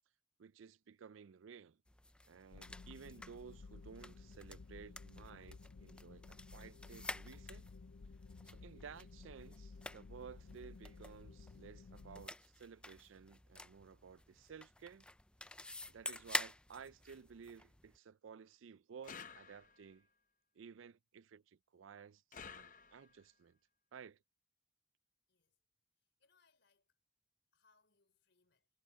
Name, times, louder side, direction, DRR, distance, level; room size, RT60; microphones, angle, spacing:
voice 1, 0.4-1.8 2.3-7.7 8.4-15.1 15.9-20.1 20.5-23.6 23.9-24.2, right 6 dB, 75° right, 0.4 m, -55 dB
sound 1, 1.9-18.0, left 2 dB, 5° left, 0.3 m, -49 dB
sound 2, 2.5-12.3, left 4 dB, 85° left, 0.6 m, -55 dB
sound 3, 19.0-20.0 22.3-23.3, left 6 dB, 40° left, 0.7 m, -53 dB
voice 2, 26.0-27.0 27.5-28.7, left 4 dB, 60° left, 4.6 m, -76 dB
head